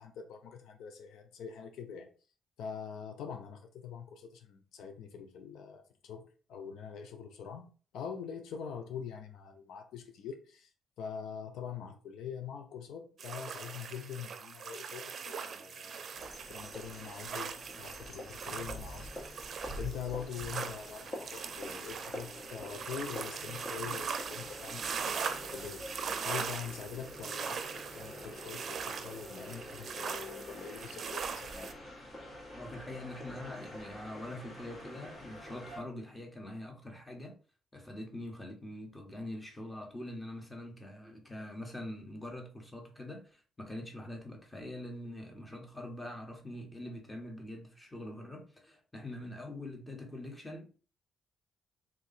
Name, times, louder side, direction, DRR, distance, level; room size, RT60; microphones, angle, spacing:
voice 1, 0.0-2.1 2.6-7.7 7.9-10.7 11.0-19.1 19.8-25.8 26.2-31.7, left 7 dB, 80° left, 0.5 m, -44 dB
sound 1, 13.2-31.7, right 6 dB, 55° right, 0.5 m, -41 dB
sound 2, 16.2-35.8, left 1 dB, 35° left, 1.4 m, -46 dB
voice 2, 32.5-37.4 37.7-50.7, left 1 dB, 15° left, 1.4 m, -44 dB
3.8 x 2.6 x 4.2 m
cardioid pair, 90°, 0 cm